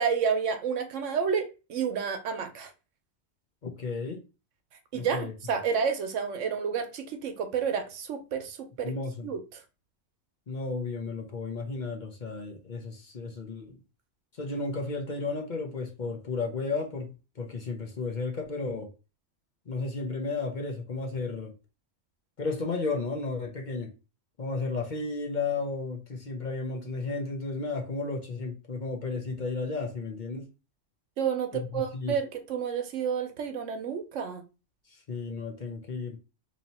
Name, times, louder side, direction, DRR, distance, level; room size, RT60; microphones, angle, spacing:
voice 1, 0.0-2.7 4.9-8.9 9.2-9.4 31.2-34.4, right 6 dB, 90° right, 1.1 m, -30 dB
voice 2, 3.6-4.2 4.9-5.3 8.8-9.3 10.5-13.8 14.4-18.9 19.7-21.5 22.4-23.9 24.4-30.5 31.5-32.2 34.9-36.2, left 3 dB, 45° left, 0.8 m, -33 dB
3.1 x 2.8 x 4.1 m
omnidirectional pair, 1.2 m